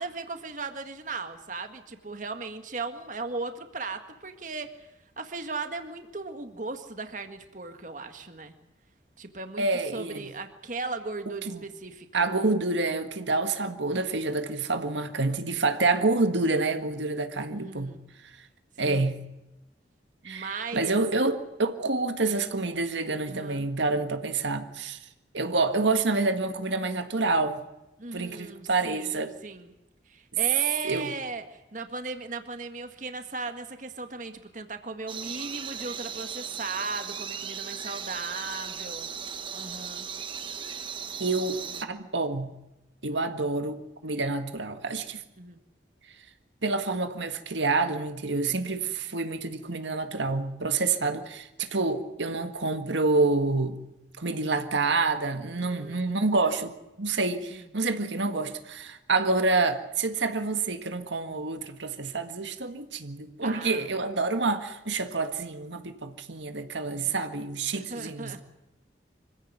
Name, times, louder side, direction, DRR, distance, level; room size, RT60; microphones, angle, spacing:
voice 1, 0.0-4.9 5.2-8.5 9.2-9.7 9.9-12.3 17.5-18.0 18.8-19.1 20.2-21.0 23.3-23.7 28.0-29.2 29.4-29.7 30.1-39.1 39.5-40.1 41.7-41.9 43.1-43.3 45.4-45.6 48.5-48.8 55.5-56.1 57.5-57.7 63.4-63.9 66.8-67.3 67.7-68.4, right 3 dB, 45° right, 1.8 m, -37 dB
voice 2, 9.6-10.3 11.5-11.6 12.1-18.0 18.8-19.2 20.2-25.0 25.3-27.6 28.1-29.3 30.8-31.1 41.2-41.6 41.9-42.5 43.0-45.2 46.6-53.8 54.2-68.3, right 3 dB, 85° right, 1.8 m, -28 dB
sound 1, 35.1-41.8, right 7 dB, 25° right, 1.1 m, -37 dB
25.5 x 16.0 x 9.5 m
head